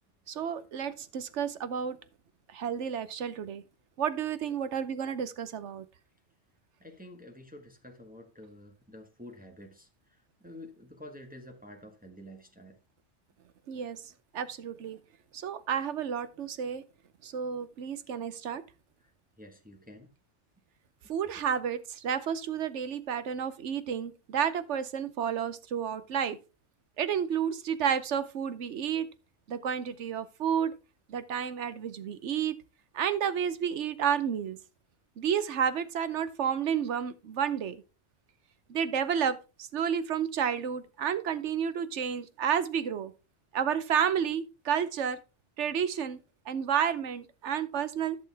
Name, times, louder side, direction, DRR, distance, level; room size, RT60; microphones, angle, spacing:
voice 1, 0.3-2.0 2.5-3.6 4.0-5.9 13.7-15.0 15.3-16.8 17.2-18.6 21.1-26.4 27.0-29.1 29.5-30.7 31.1-32.6 32.9-34.6 35.2-37.8 38.7-43.1 43.5-45.2 45.6-46.2 46.5-48.2, right 8 dB, 75° right, 1.1 m, -31 dB
voice 2, 6.8-9.9 10.4-12.8 19.4-20.1, left 1 dB, 5° right, 1.4 m, -49 dB
11.5 x 6.6 x 3.5 m
omnidirectional pair, 1.2 m